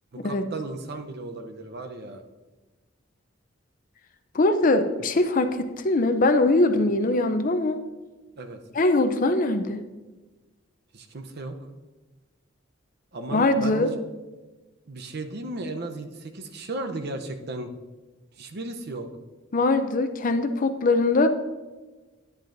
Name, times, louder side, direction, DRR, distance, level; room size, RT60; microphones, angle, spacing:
voice 1, 0.1-2.2 6.7-6.9 8.4-8.6 10.9-11.6 13.1-14.0 14.9-17.7 18.4-19.1, right 2 dB, 55° right, 6 dB, 0.7 m, -35 dB
voice 2, 4.3-7.8 8.7-9.9 13.3-13.9 19.5-21.3, left 2 dB, 40° left, 9 dB, 0.5 m, -22 dB
10.5 x 10.0 x 2.6 m, 1.2 s
head